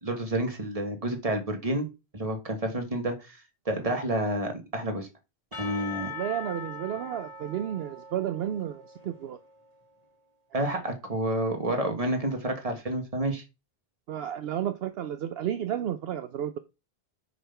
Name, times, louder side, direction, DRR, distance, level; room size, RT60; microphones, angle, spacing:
voice 1, 0.0-1.9 2.1-3.4 3.6-5.1 5.6-6.1 10.5-13.4, right 1 dB, 35° right, 5 dB, 1.6 m, -29 dB
Percussion / Church bell, 5.5-9.5, left 4 dB, 35° left, 1.7 m, -41 dB
voice 2, 6.1-9.4 14.1-16.6, right 10 dB, 70° right, 10 dB, 0.8 m, -32 dB
7.2 x 4.1 x 5.7 m, 0.27 s
omnidirectional pair, 1.1 m